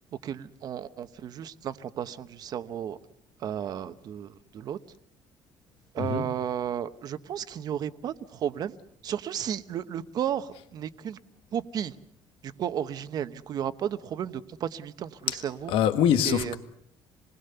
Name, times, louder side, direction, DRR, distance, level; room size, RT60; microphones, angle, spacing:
voice 1, 0.2-3.0 3.4-4.8 5.9-8.8 9.0-11.2 11.5-12.0 12.4-15.7 16.2-16.6, right 9 dB, 45° right, 1.0 m, -33 dB
voice 2, 15.7-16.6, left 9 dB, 70° left, 1.6 m, -24 dB
28.0 x 20.5 x 6.8 m
cardioid pair, 170°, 9 cm